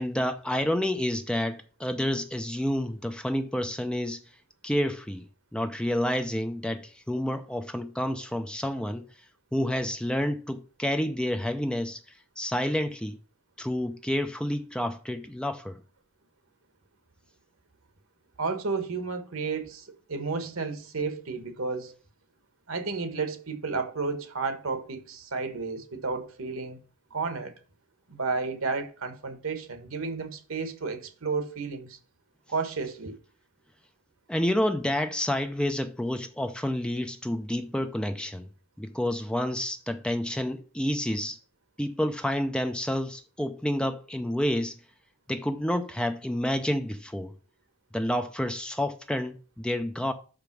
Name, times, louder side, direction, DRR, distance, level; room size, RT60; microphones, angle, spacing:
voice 1, 0.0-4.2 4.6-5.3 5.5-9.1 9.5-12.0 12.4-13.2 13.6-15.8 34.3-38.5 38.8-41.4 41.8-44.8 45.3-47.3 47.9-50.1, left 1 dB, 5° left, 0.5 m, -29 dB
voice 2, 18.4-22.0 22.7-26.8 27.1-27.5 28.1-32.0 32.5-33.1, right 4 dB, 85° right, 1.2 m, -32 dB
5.9 x 5.2 x 6.0 m
head